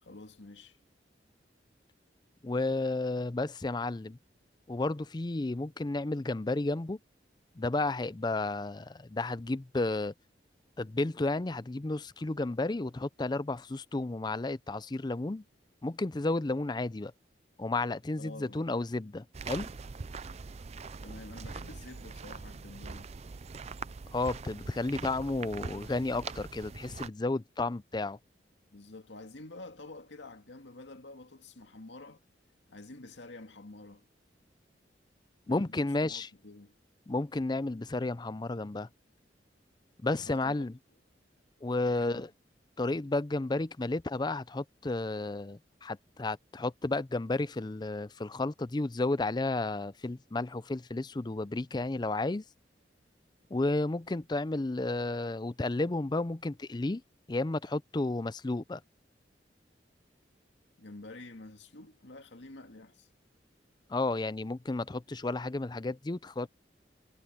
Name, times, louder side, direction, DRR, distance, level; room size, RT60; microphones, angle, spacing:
voice 1, 0.0-0.8 18.2-18.6 21.0-23.1 28.7-32.2 32.7-34.1 35.5-36.8 40.2-40.7 41.8-42.2 60.8-63.1, left 2 dB, 90° left, 2.1 m, -48 dB
voice 2, 2.4-4.2 4.7-7.0 7.6-10.1 10.8-15.4 15.8-17.1 17.6-19.7 24.1-28.2 35.5-36.3 37.1-38.9 40.0-40.8 41.6-42.3 42.8-52.4 53.5-57.0 57.3-58.8 63.9-66.5, left 2 dB, 25° left, 0.5 m, -32 dB
sound 1, 19.3-27.1, right 4 dB, 35° right, 0.5 m, -42 dB
head